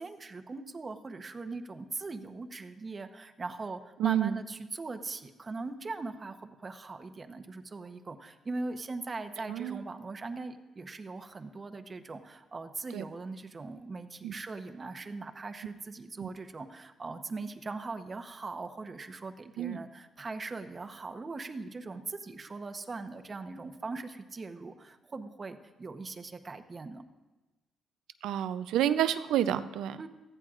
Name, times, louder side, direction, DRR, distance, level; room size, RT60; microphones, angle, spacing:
voice 1, 0.0-27.1 30.0-30.1, right 3 dB, 30° right, 8 dB, 0.9 m, -40 dB
voice 2, 4.0-4.3 9.5-9.8 12.9-13.0 14.2-14.3 16.2-16.3 19.6-19.8 28.2-30.0, right 11 dB, 85° right, 12 dB, 0.5 m, -29 dB
19.0 x 14.0 x 2.5 m, 1.2 s
cardioid pair, 90°, 0 cm